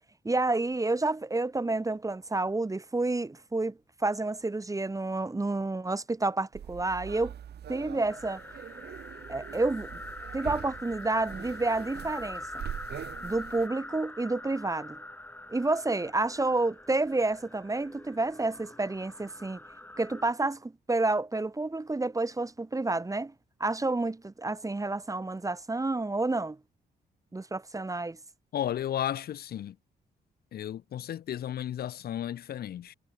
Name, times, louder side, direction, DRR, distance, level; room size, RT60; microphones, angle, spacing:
voice 1, 0.2-7.3 7.7-8.4 9.3-10.0 10.3-12.6 13.2-15.0 15.5-19.6 20.0-23.3 23.6-26.6 27.3-28.2, right 2 dB, 20° right, 1.5 m, -29 dB
sound 1, 6.5-13.7, right 9 dB, 70° right, 3.4 m, -43 dB
sound 2, 8.1-20.3, left 1 dB, 10° left, 4.7 m, -44 dB
voice 2, 28.5-29.7 30.5-32.9, left 11 dB, 65° left, 0.6 m, -33 dB
cardioid pair, 80°, 18 cm